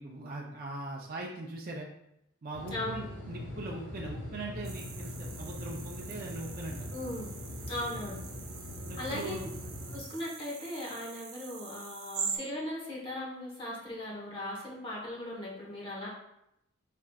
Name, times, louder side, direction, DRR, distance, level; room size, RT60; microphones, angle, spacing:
voice 1, 0.0-1.9 2.4-6.9 8.9-9.5, right 2 dB, 45° right, -2 dB, 0.5 m, -41 dB
sound 1, 2.5-10.0, left 1 dB, 70° left, 1.4 m, -42 dB
voice 2, 2.7-3.0 6.9-7.3 7.7-8.2 9.0-9.4 9.9-16.1, left 1 dB, 25° left, -5 dB, 1.1 m, -38 dB
sound 2, 4.6-12.4, right 6 dB, 85° right, 0.7 m, -43 dB
4.3 x 3.7 x 2.3 m, 0.81 s
head